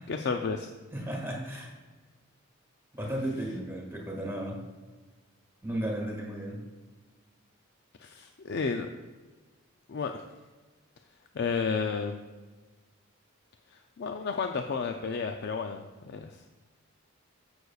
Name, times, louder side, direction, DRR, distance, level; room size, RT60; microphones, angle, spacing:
voice 1, 0.1-0.7 8.0-8.9 9.9-10.2 11.3-12.2 14.0-16.3, left 5 dB, 50° left, 5 dB, 0.4 m, -31 dB
voice 2, 0.9-1.7 3.0-4.6 5.6-6.6, right 1 dB, 10° right, -2 dB, 1.8 m, -34 dB
14.5 x 6.4 x 2.4 m, 1.3 s
head